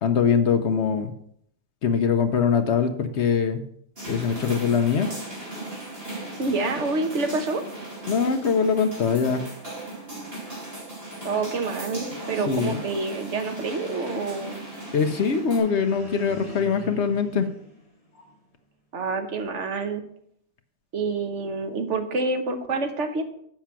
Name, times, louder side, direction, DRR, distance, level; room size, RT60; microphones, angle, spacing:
voice 1, 0.0-1.1 1.8-3.6 4.1-5.1 8.1-9.4 12.5-12.8 14.9-17.5, left 6 dB, 60° left, 8 dB, 0.9 m, -22 dB
sound 1, 4.0-15.6, right 1 dB, 45° right, 3.3 m, -37 dB
voice 2, 6.4-7.6 11.2-14.6 18.9-20.0 20.9-23.2, right 3 dB, 60° right, 6 dB, 1.2 m, -27 dB
sound 2, 14.9-18.5, left 1 dB, 25° left, 2.0 m, -42 dB
7.6 x 5.8 x 5.8 m, 0.70 s
omnidirectional pair, 1.4 m